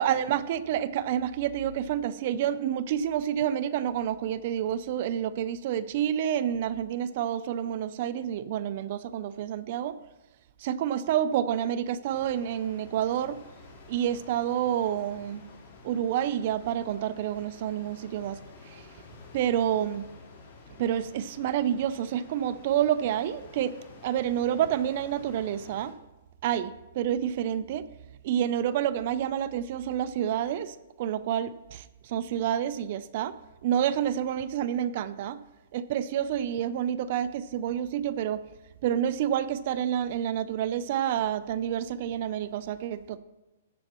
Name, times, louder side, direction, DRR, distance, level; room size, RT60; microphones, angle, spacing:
voice 1, 0.0-10.0 10.6-13.4 13.9-15.4 15.8-18.4 18.7-18.8 19.3-20.1 20.8-23.8 24.0-26.0 26.4-27.9 28.2-33.4 33.6-35.4 35.7-38.4 38.8-43.2, right 10 dB, 40° right, 15 dB, 0.5 m, -28 dB
sound 1, 12.0-25.9, left 3 dB, 45° left, 3.7 m, -51 dB
14.5 x 8.5 x 3.0 m, 0.99 s
hypercardioid pair, 165°, 0 cm